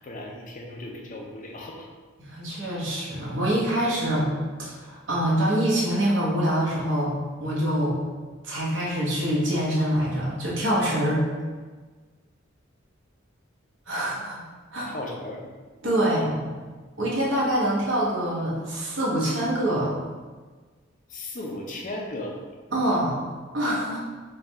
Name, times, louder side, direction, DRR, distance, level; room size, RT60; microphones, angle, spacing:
voice 1, 0.0-1.9 14.9-15.4 16.1-16.2 21.1-22.4, left 1 dB, 40° left, 0 dB, 0.5 m, -36 dB
voice 2, 2.2-4.3 4.6-7.1 7.4-8.0 8.4-11.2 13.9-14.4 14.7-15.0 15.8-16.4 17.0-20.0 22.7-23.2 23.5-24.0, right 1 dB, 65° right, -6 dB, 1.0 m, -25 dB
3.5 x 2.3 x 4.1 m, 1.4 s
head